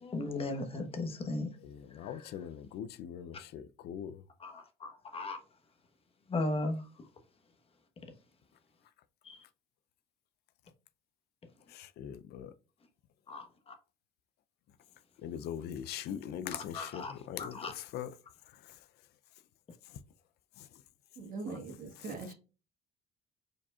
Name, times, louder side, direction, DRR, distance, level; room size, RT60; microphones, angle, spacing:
voice 1, 0.0-1.5 2.0-2.3 4.4-5.4 6.3-6.8 9.3-9.4 13.3-13.7 16.5-17.1 17.4-17.7 21.5-21.6, left 2 dB, 35° left, 1.1 m, -37 dB
voice 2, 1.6-4.2 11.7-12.5 15.2-18.1 20.6-20.7 22.0-22.1, left 9 dB, 75° left, 0.5 m, -41 dB
voice 3, 21.2-22.3, right 3 dB, 55° right, 1.8 m, -41 dB
4.9 x 4.2 x 2.4 m
cardioid pair, 110°, 17 cm